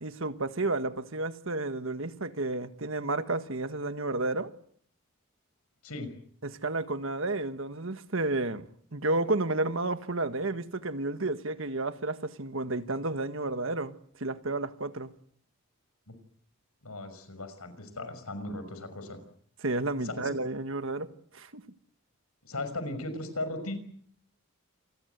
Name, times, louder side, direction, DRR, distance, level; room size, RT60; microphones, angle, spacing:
voice 1, 0.0-4.5 6.4-8.6 8.9-13.9 14.2-15.1 19.6-21.1 21.3-21.6, right 2 dB, 60° right, 1.6 m, -31 dB
voice 2, 16.8-19.2 20.0-20.3 22.4-23.8, left 2 dB, 90° left, 5.9 m, -37 dB
28.5 x 21.0 x 8.2 m
head